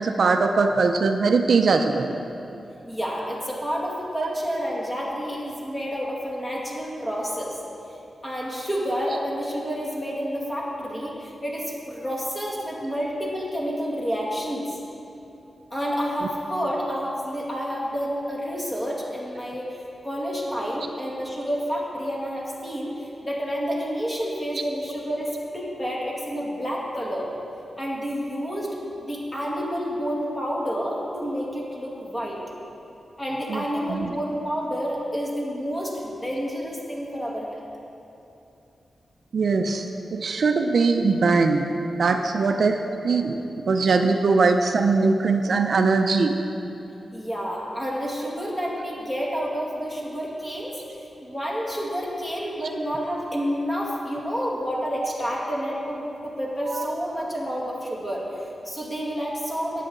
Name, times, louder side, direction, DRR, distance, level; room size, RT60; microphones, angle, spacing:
voice 1, 0.0-2.1 4.2-4.3 33.5-34.2 39.3-39.9 40.1-43.4 43.7-46.4 56.7-56.8, right 4 dB, 60° right, 5 dB, 0.6 m, -21 dB
voice 2, 2.9-7.6 8.2-14.8 15.7-27.3 27.8-32.4 33.2-37.6 47.1-59.8, equal, 15° left, -4 dB, 2.3 m, -29 dB
18.0 x 8.4 x 3.8 m, 2.8 s
wide cardioid pair, 135°, 0 cm